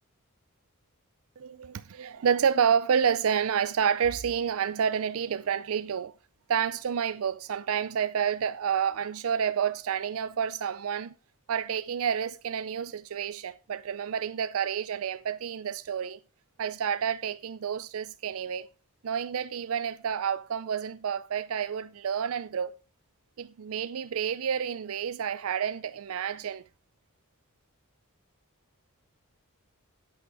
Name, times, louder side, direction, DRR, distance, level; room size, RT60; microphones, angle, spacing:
voice 1, 1.4-6.1 6.5-11.1 11.5-16.2 16.6-18.7 19.0-22.8 23.4-26.6, right 7 dB, 65° right, 0.4 m, -29 dB
8.6 x 8.2 x 4.7 m
head